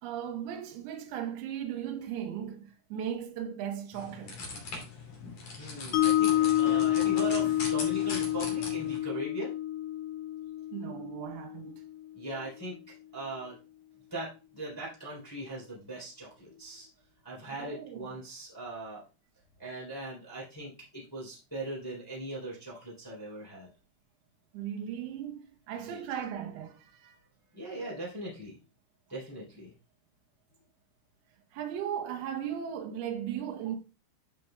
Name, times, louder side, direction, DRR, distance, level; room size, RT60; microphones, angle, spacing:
voice 1, 0.0-4.4 10.7-11.7 17.6-18.1 24.5-27.2 31.5-33.8, right 9 dB, 85° right, 2.2 m, -37 dB
sound 1, 3.9-9.0, left 3 dB, 40° left, 3.2 m, -40 dB
voice 2, 5.6-9.5 12.1-13.5 14.1-16.9 17.2-19.0 19.6-23.7 25.8-26.0 27.5-28.6 29.1-29.7, right 1 dB, 5° left, 2.5 m, -40 dB
Mallet percussion, 5.9-12.1, left 13 dB, 85° left, 3.5 m, -29 dB
11.5 x 5.5 x 2.3 m
omnidirectional pair, 5.9 m